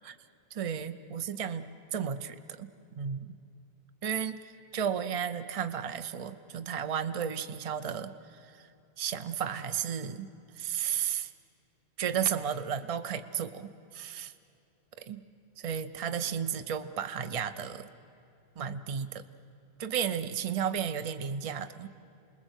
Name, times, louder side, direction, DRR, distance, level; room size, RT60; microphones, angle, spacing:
voice 1, 0.5-3.4 4.0-8.7 9.0-10.3 10.6-11.3 12.0-14.3 15.0-15.2 15.6-17.9 18.6-19.2 19.8-21.9, right 8 dB, 35° right, 10 dB, 0.7 m, -33 dB
28.5 x 20.5 x 8.2 m, 2.6 s
omnidirectional pair, 1.1 m